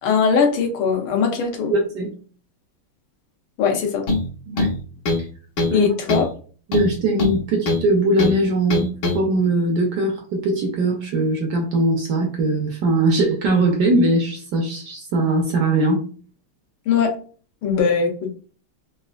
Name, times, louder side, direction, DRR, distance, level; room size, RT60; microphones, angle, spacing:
voice 1, 0.0-1.7 3.6-4.0 5.7-6.3 16.9-17.1 17.6-18.1, left 6 dB, 90° left, 3 dB, 1.6 m, -20 dB
voice 2, 1.7-2.1 4.5-4.7 5.7-5.9 6.7-16.1, right 2 dB, 70° right, 2 dB, 1.0 m, -20 dB
sound 1, 4.1-4.3 4.6-5.3 5.6-5.8 6.1-6.3 6.7-7.9 8.2-8.4 8.7-9.2, left 2 dB, 65° left, 1.5 m, -21 dB
4.0 x 2.4 x 2.3 m, 0.40 s
omnidirectional pair, 2.3 m